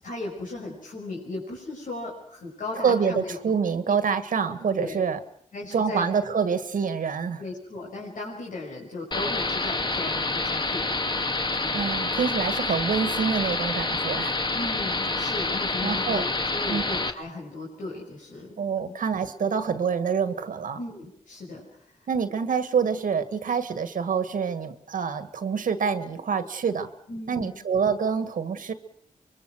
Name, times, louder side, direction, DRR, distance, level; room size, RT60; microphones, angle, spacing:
voice 1, 0.0-3.5 4.8-5.0 5.5-6.0 7.4-11.8 14.5-18.9 20.8-22.0 27.1-27.5, left 2 dB, 85° left, -3 dB, 6.2 m, -36 dB
voice 2, 2.8-5.2 5.7-7.4 11.5-14.4 15.8-16.2 16.7-16.8 18.6-20.8 22.1-26.9 27.3-28.7, right 6 dB, 90° right, 11 dB, 1.8 m, -26 dB
sound 1, 9.1-17.1, left 3 dB, 35° left, 1.8 m, -27 dB
25.0 x 23.0 x 6.3 m, 0.70 s
wide cardioid pair, 85°, 13 cm